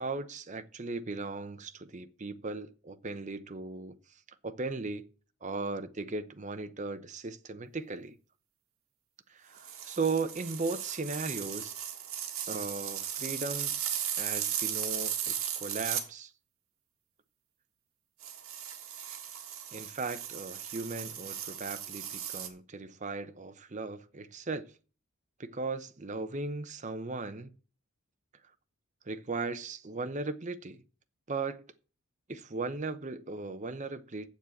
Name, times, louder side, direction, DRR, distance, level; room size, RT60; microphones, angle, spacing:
voice 1, 0.0-4.0 4.4-5.1 5.4-8.2 9.3-11.7 12.5-13.7 14.2-16.3 19.7-24.7 25.4-27.6 29.1-30.8 31.3-31.6 32.3-34.3, right 3 dB, 35° right, 0.7 m, -37 dB
sound 1, 9.6-16.1 18.2-22.5, right 9 dB, 75° right, 1.7 m, -36 dB
7.5 x 7.3 x 8.3 m
head